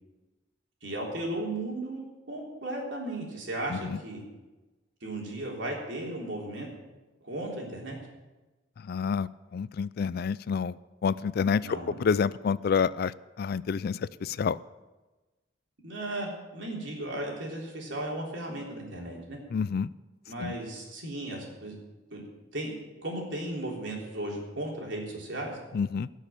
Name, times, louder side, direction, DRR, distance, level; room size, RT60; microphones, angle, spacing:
voice 1, 0.8-4.2 5.0-6.7 7.2-8.0 11.6-12.0 15.8-19.4 20.3-21.8 22.1-22.3 22.5-22.7 23.0-25.5, right 1 dB, 70° right, -2 dB, 3.6 m, -35 dB
voice 2, 3.7-4.0 8.8-14.6 19.5-19.9 20.4-20.5 25.7-26.1, left 6 dB, 55° left, 19 dB, 0.3 m, -29 dB
17.0 x 6.5 x 7.4 m, 1.2 s
head